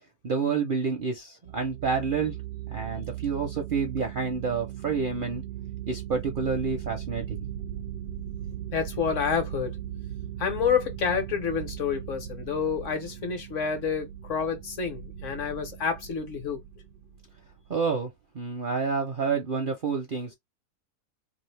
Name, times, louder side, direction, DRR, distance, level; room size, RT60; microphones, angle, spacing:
voice 1, 0.2-2.3 2.7-5.4 5.9-7.4 17.7-18.1 18.3-20.3, right 5 dB, 50° right, 0.6 m, -28 dB
sound 1, 1.5-17.7, right 11 dB, 75° right, 1.1 m, -38 dB
voice 2, 8.7-9.7 10.4-16.6, left 6 dB, 60° left, 1.0 m, -28 dB
2.7 x 2.5 x 3.2 m
omnidirectional pair, 1.6 m